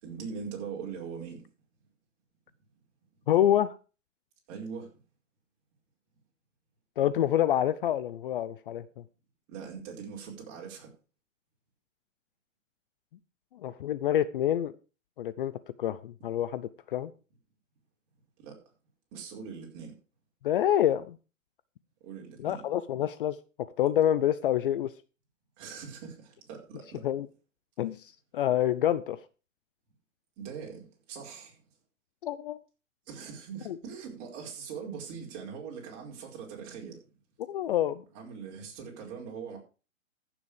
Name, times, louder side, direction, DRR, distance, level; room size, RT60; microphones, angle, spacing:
voice 1, 0.0-1.4 4.5-4.9 9.5-10.9 18.4-18.5 19.1-19.9 22.0-22.6 25.6-27.0 30.4-31.6 33.1-37.0 38.1-39.6, right 6 dB, 35° right, 4.9 m, -41 dB
voice 2, 3.3-3.8 7.0-9.0 13.5-14.7 15.2-17.1 20.4-21.2 22.4-24.9 27.0-27.3 27.8-29.2 32.2-32.6 33.7-33.8 37.5-38.0, left 11 dB, 45° left, 0.6 m, -27 dB
14.5 x 7.0 x 5.0 m
hypercardioid pair, 145°, 39 cm